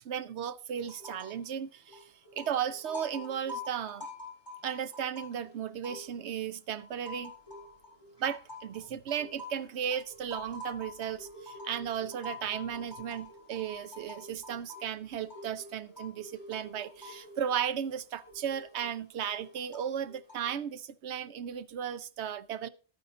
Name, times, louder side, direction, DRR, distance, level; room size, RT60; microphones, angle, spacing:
voice 1, 0.0-2.1 2.4-4.1 4.6-7.3 8.2-22.7, right 8 dB, 75° right, 1.0 m, -35 dB
sound 1, 0.8-1.5 1.7-6.4 6.8-20.6, left 2 dB, 20° left, 6.3 m, -47 dB
12.0 x 9.3 x 3.9 m
omnidirectional pair, 1.2 m